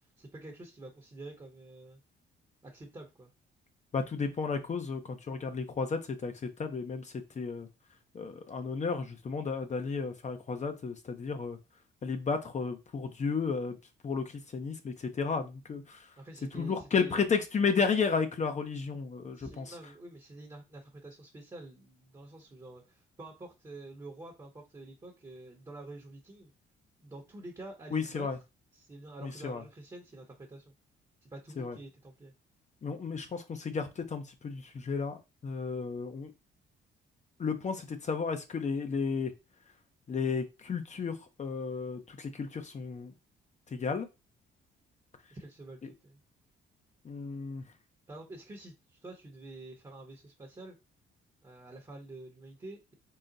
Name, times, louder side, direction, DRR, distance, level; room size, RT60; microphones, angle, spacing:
voice 1, 0.2-2.0 2.6-3.3 16.2-17.2 19.3-26.5 27.0-28.3 28.7-30.7 31.2-32.3 45.3-46.2 48.1-50.8 51.4-52.9, right 2 dB, 20° right, 0.9 m, -48 dB
voice 2, 3.9-7.7 8.1-11.6 12.0-13.8 14.0-16.1 16.5-19.7 27.9-28.4 29.2-29.6 31.6-31.8 32.8-36.3 37.4-39.3 40.1-43.1 43.7-44.1 45.8-45.9 47.0-47.6, left 5 dB, 35° left, 0.6 m, -33 dB
3.9 x 2.1 x 3.9 m
cardioid pair, 90°, 20 cm